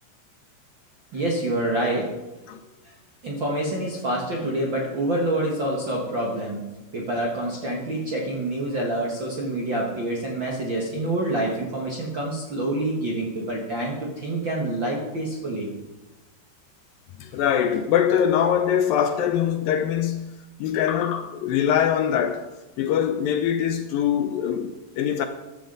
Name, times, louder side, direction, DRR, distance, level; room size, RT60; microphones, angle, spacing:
voice 1, 1.1-2.2 2.8-2.9 3.2-6.6 6.9-15.7 17.3-17.4, right 1 dB, 50° right, 1.4 m, -27 dB
voice 2, 17.2-20.3 20.6-22.5 22.8-25.3, left 9 dB, 80° left, 2.1 m, -23 dB
14.5 x 11.0 x 3.9 m
omnidirectional pair, 4.5 m